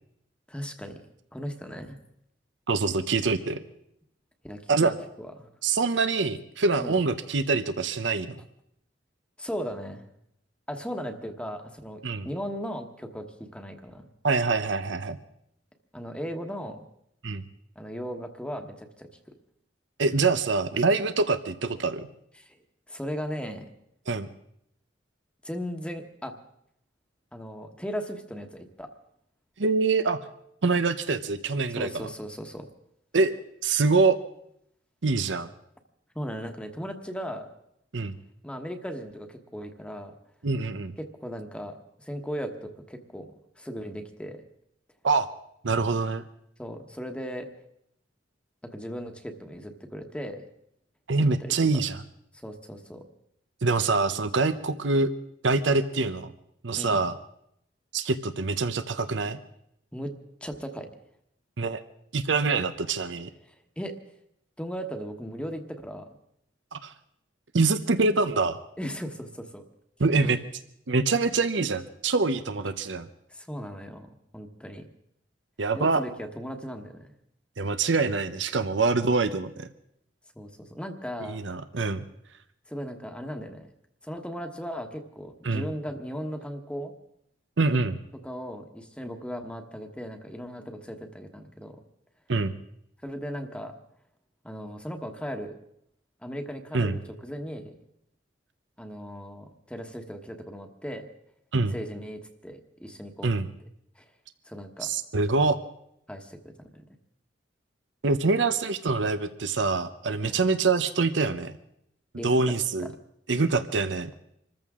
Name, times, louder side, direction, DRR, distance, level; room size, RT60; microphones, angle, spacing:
voice 1, 0.5-1.0 1.3-2.0 4.4-5.5 6.8-7.0 9.4-10.0 10.7-14.1 15.9-16.8 17.7-19.1 22.4-22.6 22.9-23.7 25.4-26.3 27.3-28.9 31.7-32.7 36.1-37.5 38.4-40.1 41.0-43.3 43.6-44.4 46.6-47.5 48.6-50.4 51.4-51.5 52.4-53.0 56.7-57.0 59.9-60.1 60.4-60.9 63.5-63.9 64.6-66.1 68.8-69.6 70.2-70.3 73.3-74.1 74.3-74.9 75.7-77.1 80.3-81.4 82.7-83.7 84.0-86.9 88.2-91.8 93.0-93.8 94.4-95.5 96.2-97.7 98.8-101.1 101.7-103.3 104.0-104.1 104.4-104.9 106.1-106.8 110.2-110.5 112.2-112.9, equal, 5° left, 5 dB, 1.2 m, -37 dB
voice 2, 2.7-3.6 4.7-4.9 5.6-8.4 12.0-12.3 14.2-15.2 17.2-17.5 20.0-22.1 24.1-24.3 29.6-30.2 30.6-32.1 33.1-33.3 33.6-34.2 35.0-35.5 37.9-38.2 40.4-40.9 45.0-45.3 45.6-46.2 51.1-52.0 53.6-55.1 55.4-56.3 56.6-57.2 57.9-59.4 61.6-61.8 62.1-63.3 66.7-66.9 67.5-68.6 70.0-70.4 70.9-73.1 75.6-76.0 77.6-79.7 81.2-82.0 85.4-85.7 87.6-88.0 92.3-92.5 96.7-96.9 101.5-101.7 103.2-103.5 104.8-105.6 108.0-111.5 112.2-112.9 113.3-114.1, right 3 dB, 85° right, 11 dB, 0.8 m, -25 dB
26.5 x 14.5 x 3.7 m, 0.74 s
head